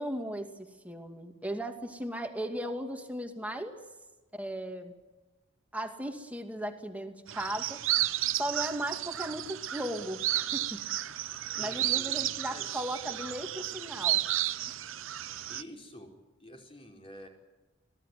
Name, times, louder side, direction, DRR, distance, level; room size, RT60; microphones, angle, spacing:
voice 1, 0.0-3.7 4.3-5.0 5.7-7.8 8.3-10.8 11.5-14.2 14.7-14.8, right 1 dB, 5° right, 4 dB, 2.4 m, -37 dB
sound 1, 7.3-15.6, right 13 dB, 80° right, 0.9 m, -32 dB
voice 2, 11.6-12.9 15.2-16.1 16.4-17.3, left 1 dB, 30° left, 1 dB, 4.8 m, -49 dB
25.0 x 18.0 x 9.3 m, 1.1 s
head